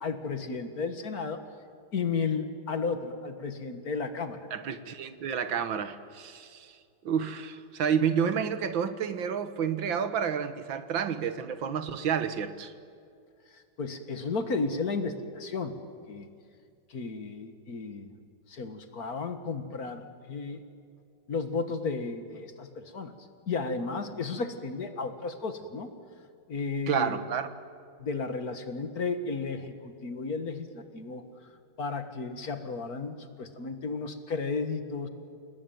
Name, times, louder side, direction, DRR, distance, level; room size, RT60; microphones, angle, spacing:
voice 1, 0.0-1.4 1.9-4.5 13.5-15.8 16.1-16.3 16.9-18.1 18.5-20.6 21.3-23.1 23.5-26.0 26.5-27.2 28.0-31.2 31.8-35.1, left 4 dB, 50° left, 8 dB, 1.9 m, -33 dB
voice 2, 4.5-6.7 7.0-12.7 26.9-27.5, right 7 dB, 75° right, 10 dB, 1.9 m, -30 dB
29.0 x 19.5 x 9.2 m, 2.3 s
omnidirectional pair, 2.1 m